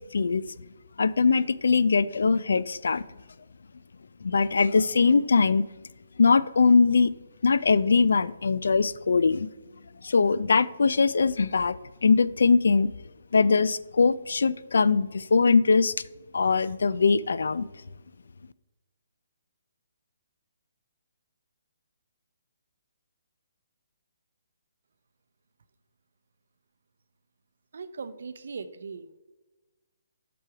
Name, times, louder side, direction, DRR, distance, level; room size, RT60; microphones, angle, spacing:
voice 1, 0.1-0.5 1.0-3.0 4.2-5.6 6.2-7.1 7.4-9.5 10.0-12.9 13.3-15.9 16.3-17.6, left 4 dB, 75° left, 0.4 m, -22 dB
voice 2, 27.7-29.1, right 5 dB, 60° right, 0.6 m, -39 dB
6.1 x 6.0 x 4.7 m
hypercardioid pair, 175°, 0 cm